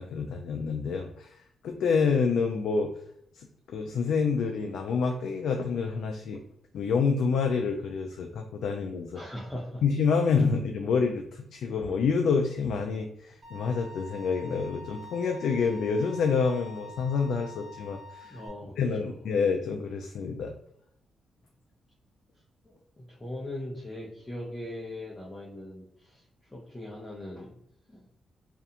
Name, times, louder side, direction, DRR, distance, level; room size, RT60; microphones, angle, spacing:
voice 1, 0.0-1.4 1.6-2.9 3.3-6.4 6.7-9.2 9.8-18.4 18.8-20.5, left 5 dB, 80° left, 4 dB, 0.3 m, -28 dB
voice 2, 9.1-9.8 18.2-19.1 22.6-26.2 26.5-27.6 27.9-28.0, left 1 dB, 15° left, -4 dB, 0.6 m, -40 dB
Bowed string instrument, 13.4-18.5, left 2 dB, 40° right, 1.0 m, -46 dB
2.5 x 2.2 x 2.8 m, 0.73 s
cardioid pair, 105°, 0 cm